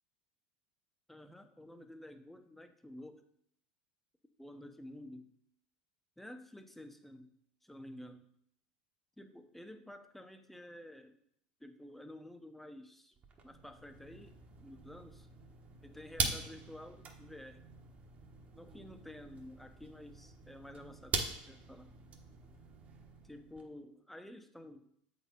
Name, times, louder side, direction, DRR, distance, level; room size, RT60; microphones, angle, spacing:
voice 1, 1.1-3.2 4.4-5.3 6.2-7.3 7.6-8.3 9.2-11.2 11.6-13.2 13.4-15.3 15.8-17.6 18.5-21.2 21.5-22.0 23.2-24.9, left 1 dB, 5° left, 7 dB, 0.8 m, -51 dB
sound 1, 13.2-23.7, right 4 dB, 35° right, 1.2 m, -43 dB
7.7 x 4.3 x 5.2 m, 0.71 s
hypercardioid pair, 90°, 5 cm